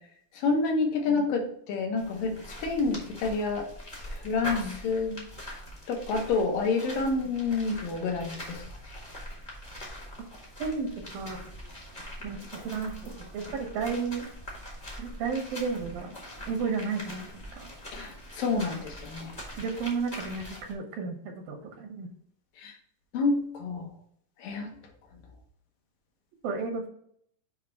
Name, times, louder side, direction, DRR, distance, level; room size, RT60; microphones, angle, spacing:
voice 1, 0.4-3.6 4.2-5.3 5.9-8.6 17.9-19.3 22.6-22.7 23.1-23.9 24.4-24.7, left 4 dB, 75° left, 3 dB, 2.7 m, -28 dB
sound 1, 2.0-20.7, equal, 30° left, 0.8 m, -43 dB
voice 2, 12.2-14.2 15.0-16.1 16.5-17.3 17.5-17.7 19.6-22.1 26.4-26.9, right 5 dB, 85° right, 4 dB, 2.8 m, -33 dB
7.3 x 2.9 x 5.3 m, 0.66 s
omnidirectional pair, 3.9 m